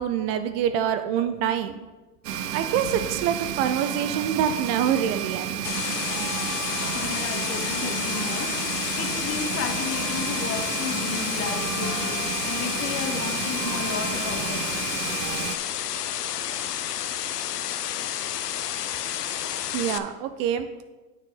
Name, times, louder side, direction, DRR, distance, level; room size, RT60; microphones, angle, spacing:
voice 1, 0.0-1.8 2.5-5.7 19.7-20.7, right 9 dB, 40° right, 10 dB, 0.5 m, -26 dB
sound 1, 2.2-15.6, right 9 dB, 85° right, 0.8 m, -31 dB
sound 2, 5.6-20.0, left 10 dB, 85° left, 0.7 m, -30 dB
voice 2, 6.7-8.5 9.0-14.7, left 6 dB, 30° left, 6 dB, 1.1 m, -33 dB
9.0 x 6.5 x 3.8 m, 1.2 s
hypercardioid pair, 105°, 46 cm